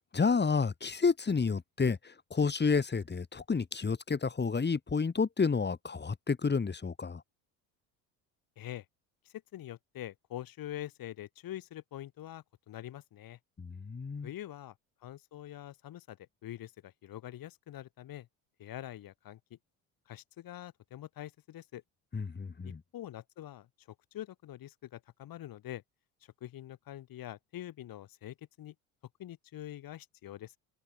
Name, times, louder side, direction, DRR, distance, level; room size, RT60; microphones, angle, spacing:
voice 1, 0.1-7.2 13.6-14.3 22.1-22.8, left 5 dB, 25° left, 4.3 m, -30 dB
voice 2, 9.3-13.4 14.2-14.7 15.0-16.2 16.4-18.3 18.6-19.6 20.1-21.8 22.6-25.8 26.4-28.7 29.2-30.6, left 13 dB, 50° left, 3.9 m, -45 dB
open air
hypercardioid pair, 75°, 43 cm